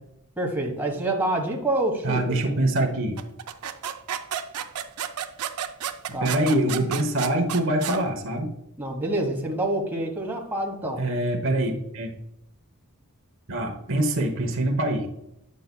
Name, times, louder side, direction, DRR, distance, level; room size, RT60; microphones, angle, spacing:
voice 1, 0.4-2.5 6.1-6.3 8.8-11.0, right 1 dB, 10° right, -1 dB, 1.3 m, -27 dB
voice 2, 2.0-3.2 6.1-8.5 11.0-12.1 13.5-15.1, right 1 dB, 60° right, 3 dB, 1.1 m, -24 dB
sound 1, 3.2-8.0, right 9 dB, 90° right, 0.6 m, -32 dB
9.2 x 6.6 x 2.2 m, 0.81 s
head